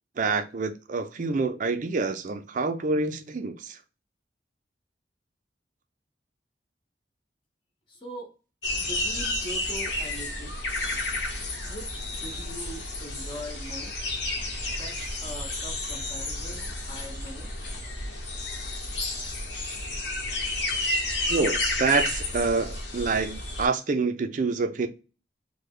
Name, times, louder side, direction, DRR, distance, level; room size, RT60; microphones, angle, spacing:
voice 1, 0.2-3.8 21.3-24.9, right 4 dB, 45° right, 0.4 m, -27 dB
voice 2, 7.9-8.3 8.8-10.6 11.7-13.9 14.7-17.5, right 1 dB, 30° left, 0.8 m, -41 dB
sound 1, 8.6-23.7, left 2 dB, 80° left, 1.0 m, -31 dB
3.2 x 2.2 x 3.5 m
head